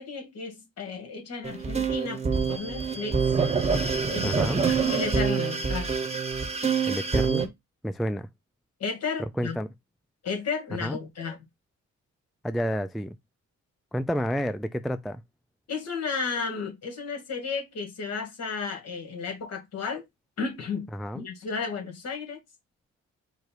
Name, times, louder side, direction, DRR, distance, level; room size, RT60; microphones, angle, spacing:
voice 1, 0.0-2.2 2.5-3.2 4.1-5.9 8.8-9.6 10.2-11.4 15.7-20.0 20.4-20.9 21.1-22.4, left 5 dB, 55° left, 2.1 m, -33 dB
sound 1, 1.4-7.5, right 5 dB, 20° right, 1.2 m, -26 dB
voice 2, 4.2-4.6 6.9-7.5 7.8-8.3 9.4-9.7 10.8-11.0 12.4-13.2 13.9-15.2 20.9-21.3, equal, ahead, 0.3 m, -30 dB
4.9 x 2.4 x 4.5 m
cardioid pair, 90°, 30 cm